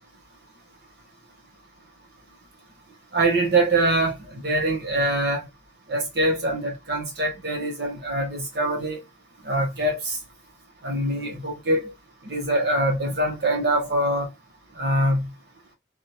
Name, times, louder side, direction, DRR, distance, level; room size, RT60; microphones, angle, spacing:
voice 1, 3.1-4.2 4.4-5.4 5.9-9.0 9.5-10.0 10.8-11.9 12.2-14.3 14.8-15.3, right 1 dB, 60° right, 1.2 m, -23 dB
2.7 x 2.0 x 2.8 m
head